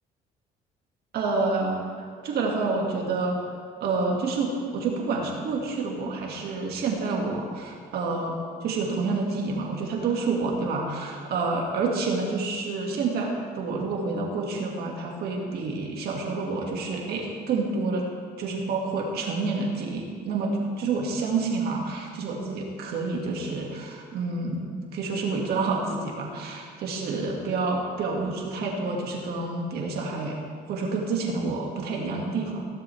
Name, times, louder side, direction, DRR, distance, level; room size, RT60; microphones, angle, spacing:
voice 1, 1.1-1.9 2.2-3.5 3.8-18.0 18.4-24.7 24.9-30.4 30.7-32.7, right 3 dB, 70° right, -1 dB, 2.2 m, -28 dB
16.5 x 11.5 x 3.5 m, 2.1 s
cardioid pair, 110°, 17 cm